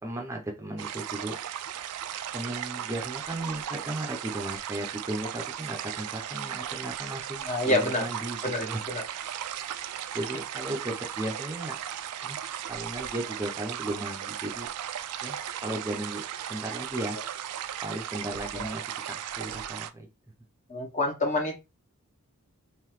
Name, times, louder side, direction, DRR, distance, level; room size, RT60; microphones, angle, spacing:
voice 1, 0.0-1.4 2.3-8.8 10.1-11.8 12.2-14.7 15.2-17.2 17.8-20.1, right 1 dB, 10° right, 1 dB, 0.6 m, -36 dB
sound 1, 0.8-19.9, right 10 dB, 85° right, 0.4 m, -36 dB
voice 2, 7.4-8.1 8.4-9.0 18.5-18.7 20.7-21.6, left 2 dB, 35° left, 4 dB, 1.0 m, -28 dB
3.8 x 3.1 x 3.1 m, 0.26 s
head